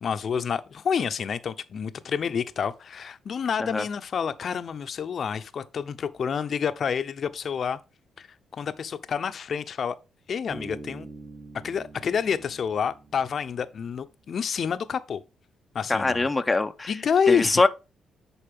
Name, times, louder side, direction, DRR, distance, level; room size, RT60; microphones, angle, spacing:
voice 1, 0.0-7.8 8.2-8.3 8.5-10.0 10.3-11.1 11.6-15.2 15.7-16.3 16.9-17.6, left 7 dB, 50° left, 0.7 m, -28 dB
Bass guitar, 10.5-14.0, right 2 dB, 20° right, 1.6 m, -44 dB
voice 2, 15.9-16.9 17.3-17.7, left 3 dB, 20° left, 0.6 m, -23 dB
10.0 x 4.3 x 3.6 m
cardioid pair, 90°, 0 cm